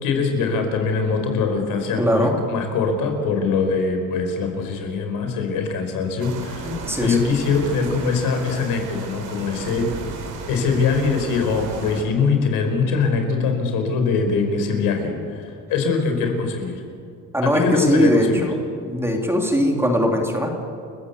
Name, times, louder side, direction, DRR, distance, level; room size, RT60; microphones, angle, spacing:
voice 1, 0.0-6.7 7.0-9.9 10.5-16.8 17.4-18.5, left 4 dB, 75° left, 5 dB, 5.0 m, -22 dB
voice 2, 2.0-2.4 6.6-7.2 17.3-18.5 18.9-20.5, equal, 5° right, 1 dB, 3.0 m, -20 dB
sound 1, 6.2-12.0, right 4 dB, 65° right, 4.9 m, -34 dB
30.0 x 15.5 x 8.3 m, 2.4 s
cardioid pair, 140°, 33 cm